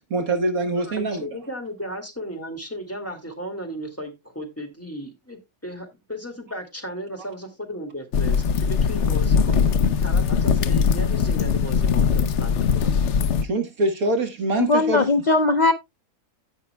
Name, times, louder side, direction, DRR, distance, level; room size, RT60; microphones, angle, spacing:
voice 1, 0.1-1.3 9.6-9.7 13.4-15.1, right 2 dB, 70° right, 1.8 m, -24 dB
voice 2, 0.8-12.9, equal, 10° left, 2.0 m, -35 dB
sound 1, 8.1-13.4, left 6 dB, 60° left, 0.9 m, -21 dB
voice 3, 14.6-15.7, left 3 dB, 85° left, 0.4 m, -19 dB
17.0 x 5.6 x 2.2 m
omnidirectional pair, 1.6 m